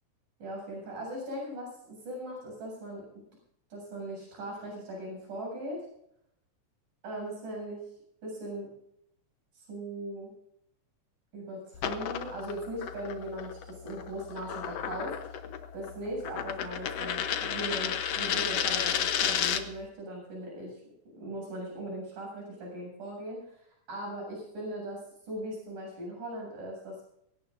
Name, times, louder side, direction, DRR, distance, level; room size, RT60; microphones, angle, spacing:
voice 1, 0.4-3.0 3.7-5.8 7.0-7.8 8.2-8.7 9.5-10.3 11.3-15.1 15.7-20.8 21.1-23.6 23.9-27.0, right 1 dB, 80° right, -1 dB, 9.4 m, -39 dB
sound 1, 11.7-19.8, left 9 dB, 65° left, 1.8 m, -32 dB
22.5 x 17.5 x 2.6 m, 0.75 s
omnidirectional pair, 3.7 m